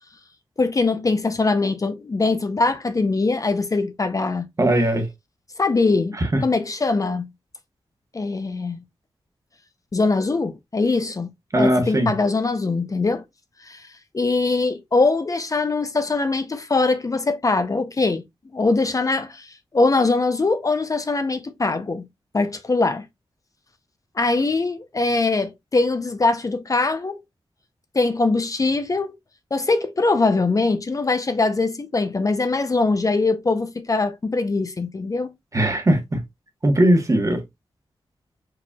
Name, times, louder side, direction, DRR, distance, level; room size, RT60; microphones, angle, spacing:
voice 1, 0.6-4.5 5.6-7.3 8.1-8.8 9.9-13.2 13.7-13.8 14.1-18.2 18.5-22.1 22.3-23.1 24.2-27.2 27.9-29.1 29.5-35.3, left 3 dB, 35° left, 0.6 m, -22 dB
voice 2, 4.6-5.1 6.1-6.4 11.5-12.1 35.5-36.2 36.6-37.4, right 1 dB, 35° right, 1.2 m, -19 dB
4.7 x 4.3 x 2.3 m
wide cardioid pair, 85°, 10 cm